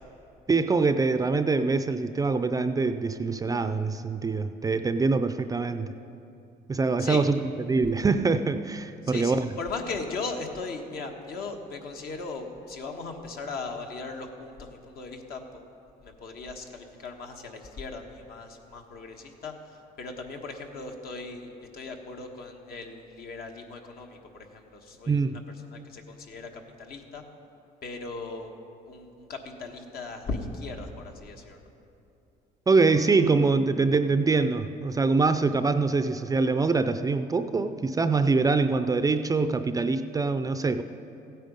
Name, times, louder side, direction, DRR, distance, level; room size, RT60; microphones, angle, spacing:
voice 1, 0.5-5.9 6.7-7.3 7.7-9.5 25.1-25.4 32.7-40.8, right 4 dB, 20° right, 10 dB, 0.4 m, -24 dB
voice 2, 9.0-15.6 16.0-25.2 25.7-27.2 27.8-28.5 28.8-31.6, left 3 dB, 65° left, 3 dB, 1.4 m, -38 dB
15.0 x 9.1 x 5.2 m, 2.8 s
cardioid pair, 110°, 17 cm